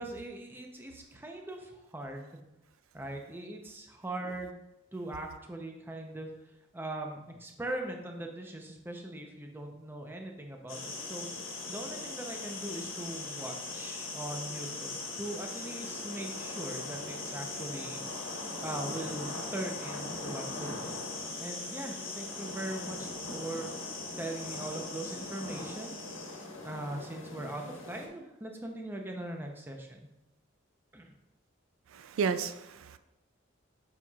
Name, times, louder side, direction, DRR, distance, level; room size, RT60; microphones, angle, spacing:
voice 1, 0.0-2.4 2.9-4.6 4.9-21.0 21.4-23.9 24.2-26.3 26.6-30.1 30.9-31.1, right 1 dB, 10° right, 0.6 m, -41 dB
sound 1, 10.7-28.1, left 2 dB, 85° left, 1.3 m, -40 dB
voice 2, 31.9-33.0, right 6 dB, 90° right, 0.3 m, -32 dB
7.4 x 5.6 x 2.3 m
head